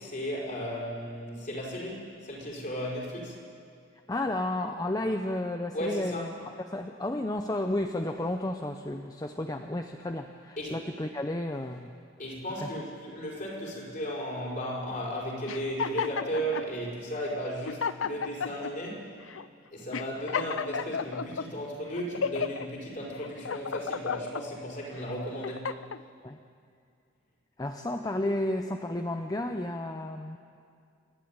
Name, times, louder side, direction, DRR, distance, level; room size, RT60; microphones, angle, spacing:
voice 1, 0.0-3.4 5.7-6.3 10.6-10.8 12.2-19.2 19.7-25.7, equal, 45° left, -2 dB, 5.3 m, -35 dB
voice 2, 4.1-11.9 12.6-12.7 26.2-26.4 27.6-30.4, left 1 dB, 20° left, 5 dB, 0.7 m, -32 dB
sound 1, 15.5-16.7 17.3-17.4 17.7-18.7 19.3-19.5 19.9-21.5 21.9-22.7 23.2-24.4 25.0-26.0, left 6 dB, 85° left, 0.6 m, -33 dB
28.5 x 12.0 x 8.9 m, 2.3 s
head